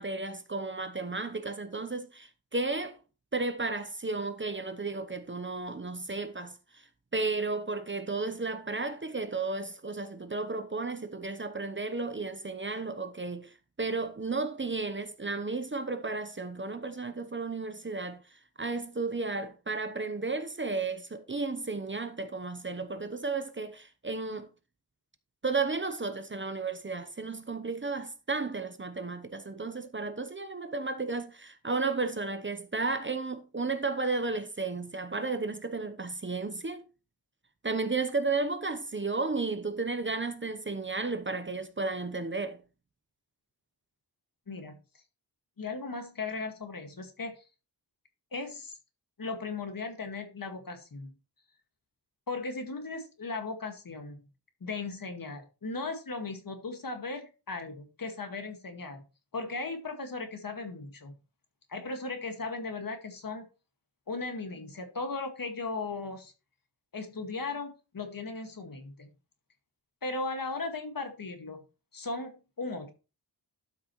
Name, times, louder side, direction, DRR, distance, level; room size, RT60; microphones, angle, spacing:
voice 1, 0.0-3.0 3.3-6.8 7.1-18.2 18.6-24.5 25.4-36.8 37.6-42.6, right 3 dB, 30° right, 0.8 m, -33 dB
voice 2, 44.5-44.8 45.6-47.4 48.3-48.8 49.2-51.1 52.3-54.3 54.6-59.0 59.3-61.2 61.7-63.5 64.1-66.3 66.9-69.1 70.0-71.6 71.9-72.9, left 3 dB, 55° left, 1.9 m, -37 dB
12.0 x 6.2 x 3.1 m
wide cardioid pair, 90°, 41 cm